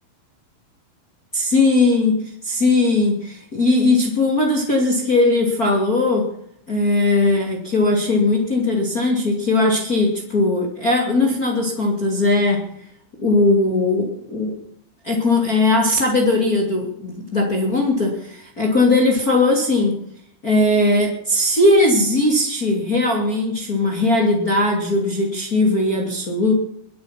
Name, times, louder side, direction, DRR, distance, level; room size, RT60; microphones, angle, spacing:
voice 1, 1.3-6.3 6.7-12.6 13.2-14.6 15.0-20.0 20.4-26.5, left 2 dB, 25° left, 0 dB, 2.8 m, -19 dB
22.0 x 9.5 x 5.9 m, 0.68 s
omnidirectional pair, 4.6 m